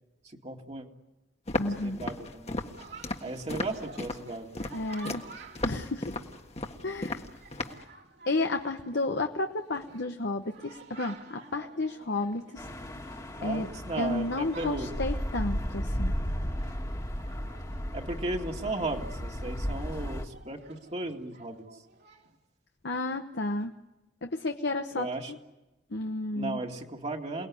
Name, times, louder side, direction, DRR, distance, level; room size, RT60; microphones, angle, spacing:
voice 1, 0.2-0.9 1.6-2.6 3.2-4.5 13.4-14.9 17.9-21.8 25.0-25.3 26.3-27.5, right 2 dB, 35° right, 1 dB, 2.2 m, -35 dB
Walk footsteps, 1.5-7.9, left 2 dB, 35° left, 1.7 m, -35 dB
voice 2, 1.6-2.0 4.7-5.2 5.6-6.2 6.8-7.2 7.7-7.8 8.3-12.7 13.4-13.7 14.0-16.1 22.8-23.7 24.2-25.4 25.9-26.6, left 2 dB, 65° left, 5 dB, 1.1 m, -32 dB
Chatter, 2.8-22.4, right 4 dB, 65° right, 2.9 m, -52 dB
sound 1, 12.6-20.3, equal, 20° left, 2.0 m, -34 dB
28.5 x 19.5 x 9.9 m, 1.0 s
head